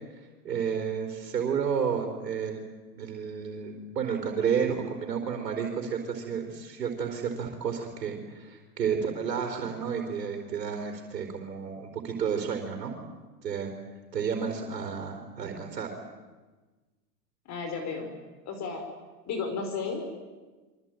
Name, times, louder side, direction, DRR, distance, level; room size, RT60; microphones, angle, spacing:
voice 1, 0.4-2.6 3.0-12.9 13.4-13.7 14.1-15.9, right 7 dB, 85° right, 3 dB, 4.6 m, -31 dB
voice 2, 17.4-18.1 18.4-18.8 19.3-20.0, left 5 dB, 35° left, 6 dB, 4.9 m, -33 dB
25.0 x 24.0 x 9.2 m, 1.3 s
hypercardioid pair, 120°, 48 cm